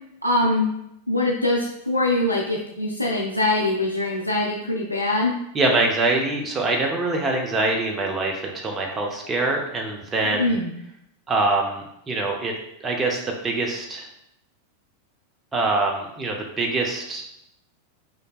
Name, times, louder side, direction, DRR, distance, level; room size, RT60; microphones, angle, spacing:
voice 1, 0.2-0.7 1.1-5.3 10.2-10.7, left 2 dB, 85° left, -2 dB, 0.4 m, -23 dB
voice 2, 5.5-10.6 11.3-12.5 12.8-14.1 15.5-17.2, right 2 dB, 20° right, 1 dB, 0.6 m, -24 dB
5.2 x 3.2 x 2.3 m, 0.78 s
figure-of-eight pair, 90°, 0 cm